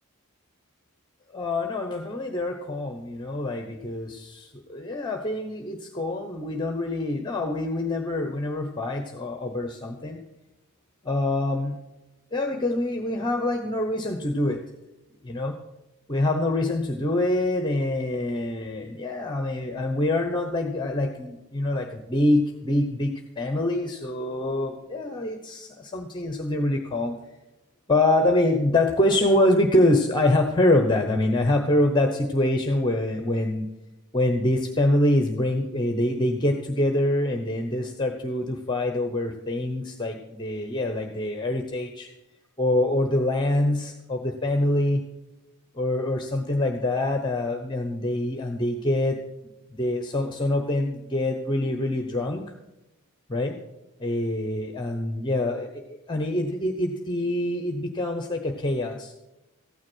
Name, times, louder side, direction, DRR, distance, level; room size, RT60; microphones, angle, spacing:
voice 1, 1.3-10.2 11.0-11.8 12.3-14.6 15.2-15.6 16.1-27.2 27.9-33.7 34.1-42.1 42.6-45.0 45.7-49.2 49.7-52.4 53.3-53.6 54.0-59.1, left 1 dB, 20° left, 4 dB, 0.9 m, -25 dB
14.5 x 9.5 x 6.2 m, 0.97 s
head